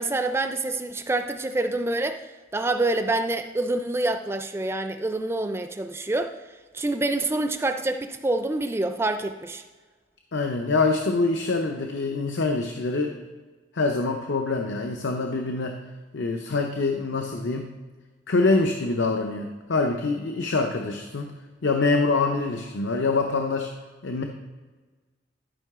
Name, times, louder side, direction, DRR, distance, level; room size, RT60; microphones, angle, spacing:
voice 1, 0.0-2.2 2.5-6.3 6.7-9.6, right 2 dB, 15° right, 8 dB, 0.4 m, -26 dB
voice 2, 10.3-13.2 13.7-15.8 16.1-17.7 18.3-21.3 21.6-23.7 24.0-24.2, left 3 dB, 75° left, 4 dB, 0.7 m, -25 dB
12.0 x 5.4 x 3.6 m, 1.4 s
head